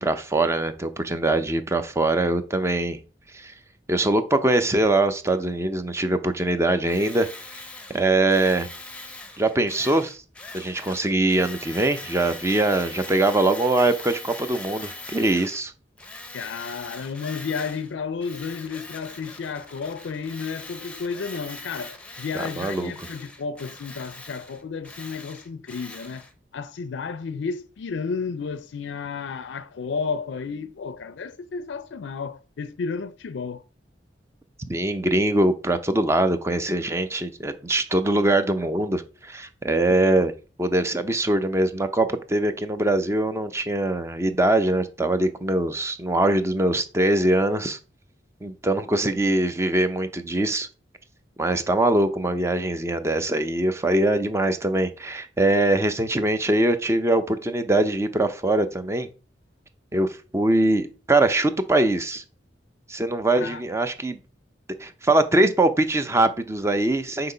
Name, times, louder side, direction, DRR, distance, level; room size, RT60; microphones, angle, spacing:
voice 1, 0.0-3.0 3.3-3.5 3.9-7.3 7.9-8.7 9.4-10.2 10.5-15.7 22.3-23.1 34.7-40.3 40.6-47.8 48.4-50.7 51.4-59.1 59.9-62.2 62.9-64.2 64.8-67.3, right 2 dB, 15° right, 0.5 m, -22 dB
Tools, 6.8-15.6 16.0-17.9 18.2-26.3, left 2 dB, 5° left, 0.9 m, -41 dB
voice 2, 16.3-26.3 26.5-33.6 63.4-63.6, left 5 dB, 75° left, 0.4 m, -32 dB
7.7 x 2.9 x 5.5 m
head